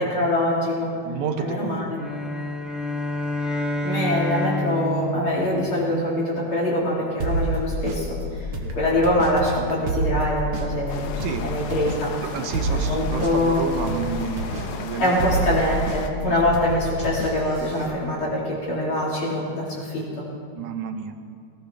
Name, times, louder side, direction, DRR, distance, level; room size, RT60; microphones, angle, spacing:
voice 1, 0.0-0.9 1.4-2.0 3.8-11.1 11.4-12.2 12.7-13.6 15.0-20.2, left 1 dB, 45° left, -6 dB, 3.8 m, -24 dB
voice 2, 1.0-1.8 8.6-8.8 11.2-11.5 12.2-15.3 16.3-16.4 20.6-21.1, right 6 dB, 85° right, 7 dB, 2.4 m, -30 dB
sound 1, 1.9-6.4, left 1 dB, ahead, 0.6 m, -28 dB
sound 2, 7.2-17.9, right 1 dB, 55° right, 1.9 m, -29 dB
sound 3, 10.9-16.1, left 6 dB, 90° left, 2.3 m, -36 dB
18.0 x 17.5 x 3.4 m, 2.3 s
omnidirectional pair, 3.3 m